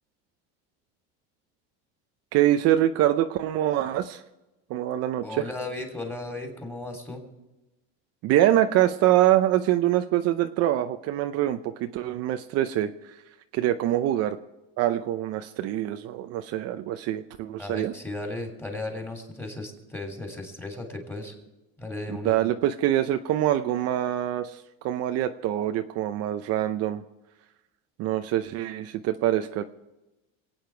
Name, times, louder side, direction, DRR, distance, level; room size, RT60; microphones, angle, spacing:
voice 1, 2.3-4.2 4.7-5.4 8.2-12.9 13.5-14.4 14.8-17.9 22.1-27.0 28.0-29.6, right 13 dB, 55° right, 8 dB, 0.7 m, -24 dB
voice 2, 5.2-7.3 17.6-21.3 21.8-22.4, left 2 dB, 5° left, 3 dB, 3.1 m, -35 dB
26.5 x 9.0 x 4.6 m, 1.0 s
supercardioid pair, 130°, 31 cm